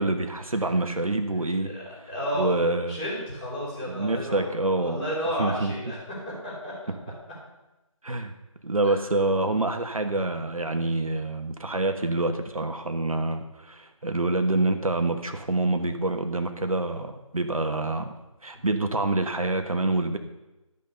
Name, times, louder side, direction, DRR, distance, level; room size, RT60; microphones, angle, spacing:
voice 1, 0.0-1.7 2.4-3.0 3.9-5.0 5.4-5.7 8.0-8.3 8.6-18.1 18.4-20.2, right 2 dB, 80° right, 6 dB, 1.3 m, -26 dB
voice 2, 1.6-2.6 2.9-4.5 4.7-6.0 6.3-6.7 8.8-9.0 18.5-18.6, equal, 15° left, -8 dB, 3.6 m, -32 dB
12.5 x 5.5 x 6.6 m, 1.0 s
figure-of-eight pair, 165°, 18 cm